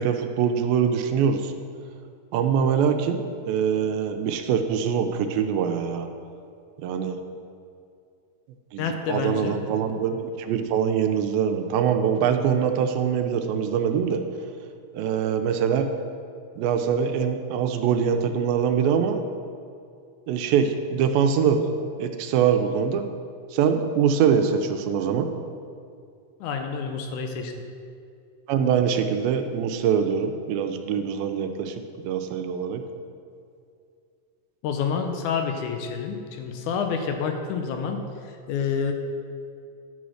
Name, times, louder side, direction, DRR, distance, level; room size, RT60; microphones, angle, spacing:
voice 1, 0.0-1.5 2.3-3.2 3.5-6.1 6.8-7.2 8.7-14.2 14.9-15.9 16.6-19.2 20.3-21.7 22.0-23.1 23.5-25.3 28.5-31.8 32.1-32.8, right 7 dB, 90° right, 6 dB, 2.4 m, -23 dB
voice 2, 8.8-9.7 26.4-27.5 34.6-38.9, left 6 dB, 85° left, 4 dB, 1.7 m, -28 dB
10.5 x 4.1 x 6.3 m, 2.4 s
omnidirectional pair, 4.1 m